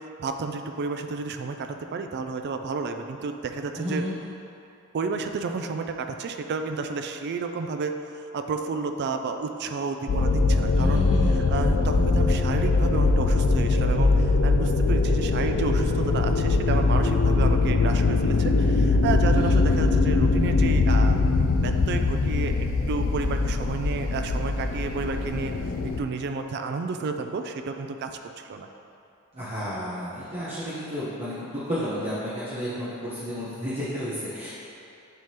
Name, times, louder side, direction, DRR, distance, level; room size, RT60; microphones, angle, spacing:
voice 1, 0.2-4.0 4.9-11.0 11.3-21.2 21.6-25.5 25.8-28.1 28.4-28.7, right 4 dB, 50° right, 6 dB, 0.3 m, -31 dB
voice 2, 3.8-4.1 10.8-11.7 19.3-19.7 29.3-34.5, equal, 30° right, -12 dB, 1.0 m, -32 dB
sound 1, 10.1-26.0, left 3 dB, 65° left, 0.4 m, -22 dB
9.0 x 3.7 x 2.9 m, 2.7 s
head